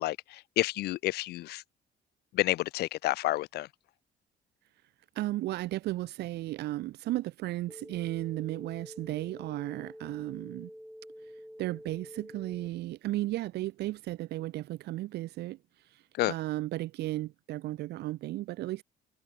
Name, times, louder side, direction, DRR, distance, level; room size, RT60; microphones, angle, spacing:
voice 1, 0.0-1.6 2.3-3.7 16.2-16.3, left 17 dB, 75° left, 0.7 m, -30 dB
voice 2, 5.2-10.7 11.6-15.6 15.8-18.8, right 16 dB, 75° right, 2.3 m, -34 dB
sound 1, 7.7-12.7, equal, ahead, 5.3 m, -48 dB
cardioid pair, 110°, 17 cm